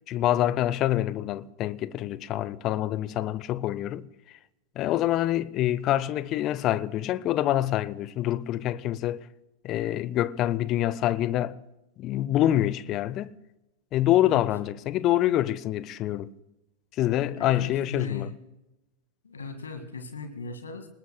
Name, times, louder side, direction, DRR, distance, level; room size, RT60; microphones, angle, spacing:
voice 1, 0.1-4.1 4.8-9.2 9.6-11.6 12.0-13.3 13.9-16.3 17.0-18.3, left 13 dB, 35° left, 0.6 m, -26 dB
voice 2, 17.3-18.3 19.2-20.9, left 3 dB, 70° left, 1.9 m, -38 dB
28.0 x 20.0 x 2.2 m
figure-of-eight pair, 90°, 0 cm